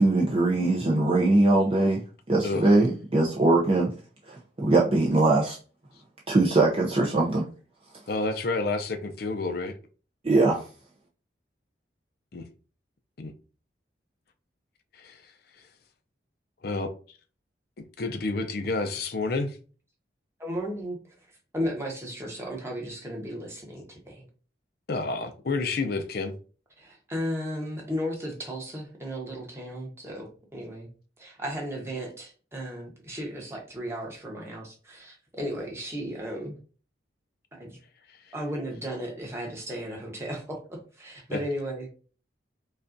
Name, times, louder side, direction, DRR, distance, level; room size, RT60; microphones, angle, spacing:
voice 1, 0.0-3.9 4.3-5.6 6.3-7.5 10.2-10.6, right 2 dB, 30° right, 0.5 m, -22 dB
voice 2, 8.1-9.7 12.3-12.5 13.2-13.3 14.9-15.2 16.6-16.9 18.0-19.6 24.9-26.3 41.3-41.4, left 3 dB, 55° left, 0.5 m, -29 dB
voice 3, 20.4-21.2 21.5-24.3 26.8-30.9 31.2-36.6 37.5-37.8 38.3-41.9, equal, 15° right, 1.0 m, -35 dB
5.2 x 2.3 x 2.6 m
head